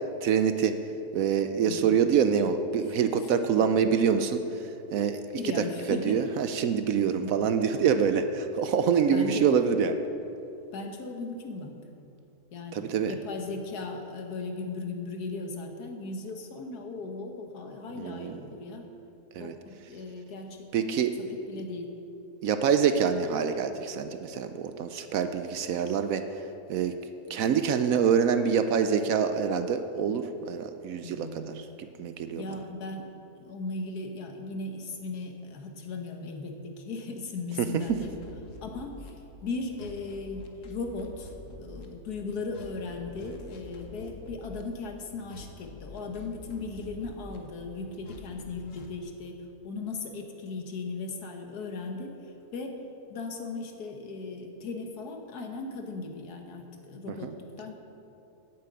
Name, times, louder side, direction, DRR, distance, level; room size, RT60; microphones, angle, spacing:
voice 1, 0.2-0.8 1.1-10.0 12.7-13.1 18.0-18.3 19.3-19.5 20.7-21.1 22.4-26.2 26.7-27.0 27.3-32.4 37.6-37.8 57.1-57.3, right 7 dB, 70° right, 9 dB, 0.9 m, -26 dB
voice 2, 1.7-2.0 3.6-3.7 5.4-6.2 7.2-7.5 9.1-9.5 10.7-11.8 12.5-18.8 19.4-21.9 25.7-25.8 31.0-31.5 32.4-33.1 33.4-38.2 38.6-39.1 39.4-41.3 41.6-52.2 52.5-52.8 53.1-57.8, left 3 dB, 75° left, 4 dB, 1.7 m, -37 dB
sound 1, 37.9-39.1 39.6-41.9 42.3-44.6 45.1-47.4 47.9-48.9, left 3 dB, 55° left, 1.4 m, -46 dB
9.3 x 7.5 x 8.5 m, 2.8 s
omnidirectional pair, 1.7 m